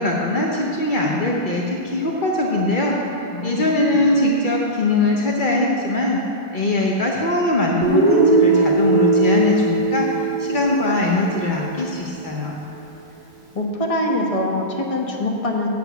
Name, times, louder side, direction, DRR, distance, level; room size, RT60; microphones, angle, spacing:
voice 1, 0.0-3.0 3.4-6.2 6.5-12.6, left 2 dB, 55° left, -2 dB, 0.5 m, -21 dB
voice 2, 3.3-4.0 13.5-15.7, left 1 dB, 25° left, -1 dB, 0.9 m, -24 dB
Guitar, 7.8-11.8, right 3 dB, 20° right, 1.9 m, -19 dB
7.8 x 7.0 x 8.1 m, 2.8 s
omnidirectional pair, 2.1 m